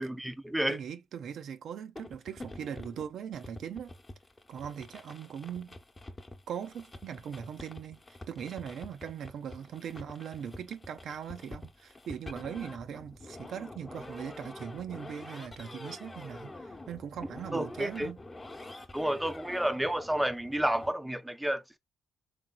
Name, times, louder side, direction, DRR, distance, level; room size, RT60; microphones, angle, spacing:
voice 1, 0.0-0.8 17.5-18.1 18.9-21.8, right 1 dB, 5° right, 0.5 m, -30 dB
voice 2, 0.7-3.9 4.5-5.8 6.5-18.2, right 8 dB, 65° right, 0.5 m, -40 dB
sound 1, 2.0-20.9, left 2 dB, 25° left, 0.9 m, -47 dB
3.7 x 3.4 x 2.2 m
hypercardioid pair, 50°, 0 cm